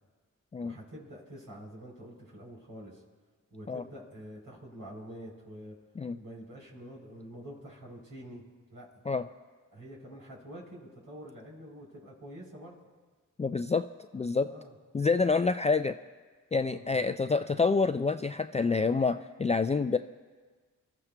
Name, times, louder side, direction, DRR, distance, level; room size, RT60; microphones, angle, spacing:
voice 1, 0.6-3.0 3.5-5.8 6.1-8.4 8.7-8.9 9.7-12.8 14.5-14.8 16.7-17.0, equal, 80° right, -4 dB, 3.7 m, -47 dB
voice 2, 13.4-13.9 14.1-14.5 14.9-15.9 16.5-20.0, left 4 dB, 20° left, 9 dB, 0.4 m, -27 dB
27.0 x 13.5 x 2.3 m, 1.4 s
cardioid pair, 40°, 33 cm